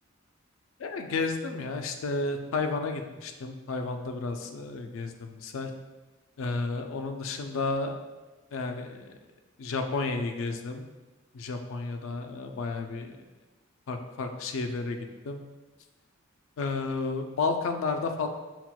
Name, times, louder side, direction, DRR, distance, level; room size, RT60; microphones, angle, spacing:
voice 1, 0.8-5.7 6.4-7.9 8.5-9.1 9.6-10.9 11.3-13.2 13.9-15.4 16.6-18.3, left 3 dB, 70° left, 5 dB, 0.4 m, -32 dB
5.8 x 2.1 x 2.2 m, 1.2 s
head